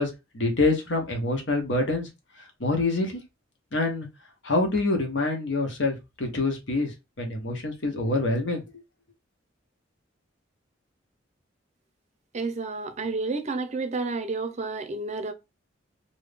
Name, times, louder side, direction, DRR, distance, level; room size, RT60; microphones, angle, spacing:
voice 1, 0.0-2.1 2.6-3.2 3.7-4.1 4.4-8.6, left 2 dB, 70° left, 1.2 m, -26 dB
voice 2, 12.3-15.3, right 3 dB, 35° right, 0.6 m, -30 dB
3.1 x 2.7 x 3.4 m
head